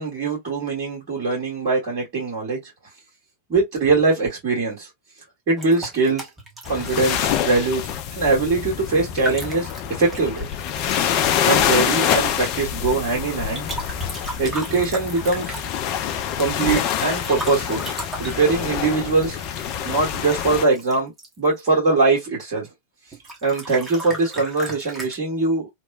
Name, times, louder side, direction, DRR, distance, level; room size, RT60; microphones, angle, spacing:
voice 1, 0.0-2.6 3.5-4.9 5.5-6.3 6.7-7.9 8.2-9.7 10.0-10.5 11.5-13.7 14.4-15.6 16.4-17.9 18.2-19.4 19.8-21.1 21.4-22.7 23.4-25.7, right 3 dB, 40° right, 1.6 m, -22 dB
sound 1, 5.6-7.4 9.0-11.3 13.5-15.9 17.1-21.7 23.1-25.2, right 1 dB, 15° right, 1.1 m, -35 dB
sound 2, 6.7-20.7, left 9 dB, 40° left, 0.4 m, -26 dB
2.9 x 2.1 x 2.4 m
figure-of-eight pair, 90°, 0 cm